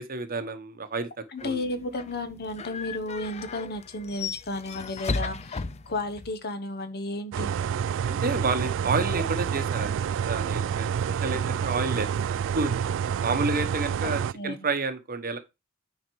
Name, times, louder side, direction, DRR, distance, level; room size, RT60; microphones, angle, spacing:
voice 1, 0.0-1.6 8.1-12.1 12.5-12.8 13.2-15.4, right 3 dB, 40° right, 1.0 m, -30 dB
voice 2, 1.3-7.5 14.0-14.6, left 2 dB, 45° left, 1.0 m, -33 dB
sound 1, 1.4-6.4, left 4 dB, 30° left, 0.5 m, -36 dB
sound 2, 7.3-14.3, right 7 dB, 60° right, 0.3 m, -28 dB
9.3 x 4.0 x 4.7 m
head